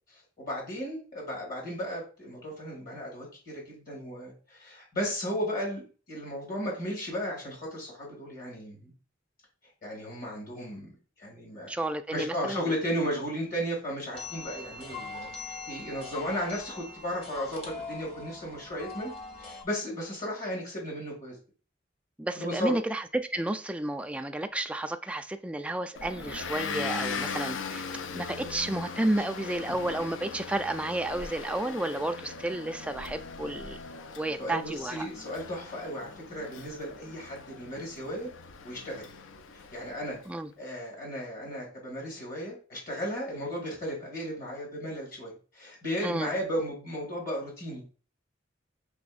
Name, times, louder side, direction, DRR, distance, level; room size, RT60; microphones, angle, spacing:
voice 1, 0.4-8.9 9.8-10.9 11.2-11.7 12.1-19.1 19.4-21.4 22.4-22.7 29.7-29.8 34.4-38.3 38.6-39.1 39.5-40.2 40.6-48.0, equal, 50° left, 2.0 m, -35 dB
voice 2, 11.7-12.7 22.2-27.9 28.1-33.8 34.2-35.1 40.3-40.5 46.0-46.3, right 1 dB, 5° right, 0.3 m, -31 dB
sound 1, 14.1-19.6, left 3 dB, 30° left, 0.9 m, -42 dB
Motor vehicle (road) / Engine, 26.0-40.2, left 5 dB, 85° left, 0.5 m, -39 dB
6.1 x 3.3 x 2.4 m
head